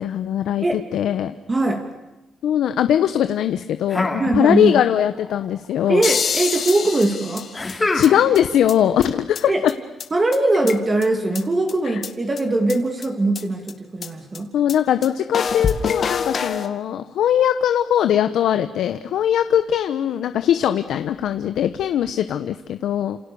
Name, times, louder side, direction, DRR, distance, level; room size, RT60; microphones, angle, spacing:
voice 1, 0.0-1.3 2.4-6.0 7.9-9.7 14.5-23.2, left 10 dB, 80° left, 10 dB, 1.1 m, -20 dB
voice 2, 1.5-1.8 4.2-4.8 5.9-7.5 9.5-9.6 10.1-14.5, right 2 dB, 25° right, 4 dB, 2.7 m, -21 dB
sound 1, 3.9-4.9 5.2-5.9 7.5-8.5, left 2 dB, 15° left, 3.1 m, -26 dB
sound 2, 6.0-8.1 8.3-8.4 8.7-8.8 9.0-9.1 9.3-9.4 9.7-9.8 10.0-10.1 10.3-11.0 11.3-11.4 11.7-11.8 12.0-12.1 12.4-12.5 12.7-12.8 13.0-13.1 13.3-13.4 13.7-13.8 14.0-14.1 14.3-14.4 14.7-14.8 15.0-15.1 15.3-16.7, left 6 dB, 45° left, 2.1 m, -25 dB
29.0 x 28.0 x 7.0 m, 1.0 s
cardioid pair, 140°, 0 cm